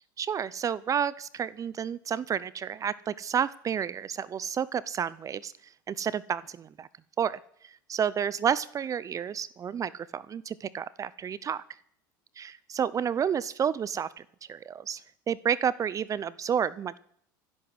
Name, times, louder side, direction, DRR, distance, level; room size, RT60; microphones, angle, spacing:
voice 1, 0.2-5.5 5.9-6.9 7.2-11.6 12.4-14.2 14.5-15.0 15.3-17.0, right 8 dB, 30° right, 20 dB, 0.7 m, -30 dB
15.0 x 11.0 x 7.9 m, 0.65 s
hypercardioid pair, 90°, 11 cm